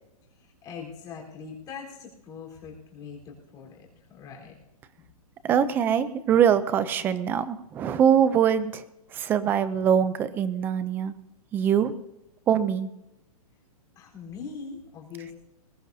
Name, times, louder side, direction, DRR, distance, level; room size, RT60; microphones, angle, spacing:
voice 1, 0.4-4.6 5.0-5.1 14.0-15.3, left 6 dB, 20° left, -1 dB, 4.1 m, -42 dB
voice 2, 5.4-8.8 9.1-11.1 11.5-11.9 12.5-12.9, right 8 dB, 10° right, 14 dB, 0.5 m, -23 dB
21.5 x 18.0 x 2.8 m, 0.90 s
hypercardioid pair, 170°, 19 cm